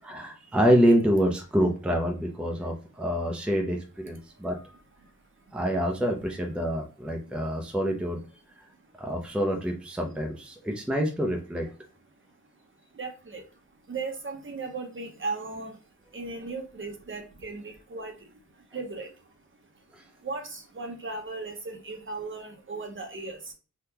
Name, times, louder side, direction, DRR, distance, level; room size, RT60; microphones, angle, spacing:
voice 1, 0.0-4.6 5.5-8.2 9.0-11.7 19.9-20.0, equal, 5° right, 2 dB, 0.6 m, -26 dB
voice 2, 4.2-4.7 5.0-5.1 5.4-5.6 7.3-7.7 8.7-9.0 12.2-23.5, right 3 dB, 40° right, 4 dB, 0.8 m, -38 dB
3.6 x 2.3 x 2.8 m, 0.34 s
cardioid pair, 75°, 32 cm